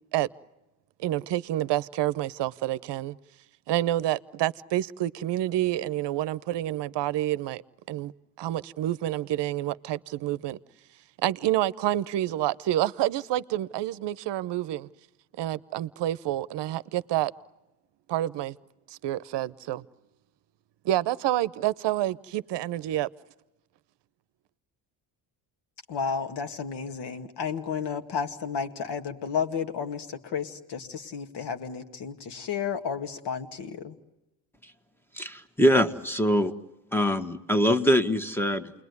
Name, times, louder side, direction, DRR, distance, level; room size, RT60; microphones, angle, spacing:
voice 1, 1.0-3.2 3.7-7.6 7.9-8.1 8.4-10.6 11.2-14.9 15.4-17.3 18.1-18.6 18.9-19.8 20.8-23.1, right 14 dB, 60° right, 0.9 m, -28 dB
voice 2, 25.9-34.0, left 6 dB, 60° left, 2.1 m, -32 dB
voice 3, 35.1-36.5 36.9-38.7, equal, 5° left, 1.6 m, -23 dB
29.0 x 21.5 x 9.6 m
supercardioid pair, 80°, 46 cm